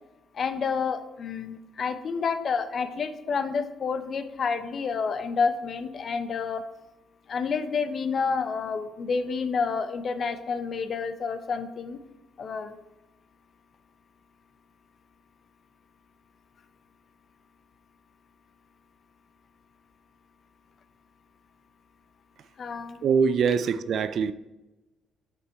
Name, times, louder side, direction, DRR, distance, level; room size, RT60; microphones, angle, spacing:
voice 1, 0.3-6.6 7.3-12.0 12.4-12.7 22.6-23.1, left 5 dB, 50° left, 0.6 m, -29 dB
voice 2, 23.0-24.3, right 6 dB, 65° right, 0.3 m, -23 dB
5.3 x 4.2 x 4.6 m
cardioid pair, 90°, 0 cm